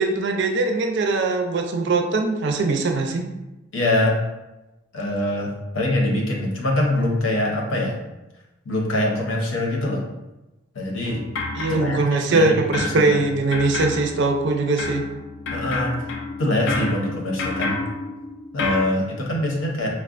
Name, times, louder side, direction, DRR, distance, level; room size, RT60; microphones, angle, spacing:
voice 1, 0.0-3.3 11.5-15.0, right 3 dB, 60° right, 4 dB, 0.4 m, -21 dB
voice 2, 3.7-4.2 4.9-8.0 8.6-10.0 10.7-11.2 11.6-13.2 15.5-16.0 16.4-17.8 18.5-19.9, left 1 dB, 80° left, -1 dB, 0.8 m, -24 dB
sound 1, 11.1-12.4 12.7-18.9, left 3 dB, 60° left, 0.4 m, -30 dB
4.6 x 2.1 x 2.4 m, 1.0 s
head